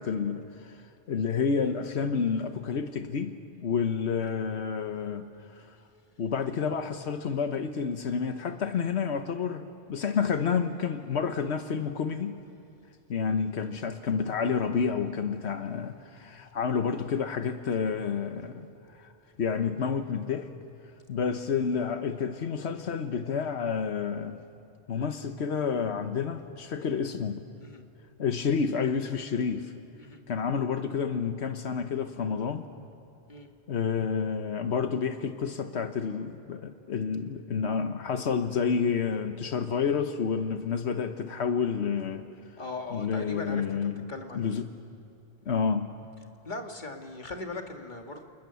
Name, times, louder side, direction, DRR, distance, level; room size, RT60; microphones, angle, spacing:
voice 1, 0.0-5.8 6.2-12.4 13.1-19.1 19.4-20.5 21.1-24.4 24.9-27.4 28.2-29.7 30.3-32.7 33.7-42.3 42.9-44.0 44.3-44.7 45.5-46.0, left 6 dB, 85° left, 1.3 m, -29 dB
voice 2, 42.6-44.6 46.4-48.2, left 3 dB, 45° left, 2.0 m, -39 dB
29.5 x 28.5 x 7.0 m
omnidirectional pair, 1.1 m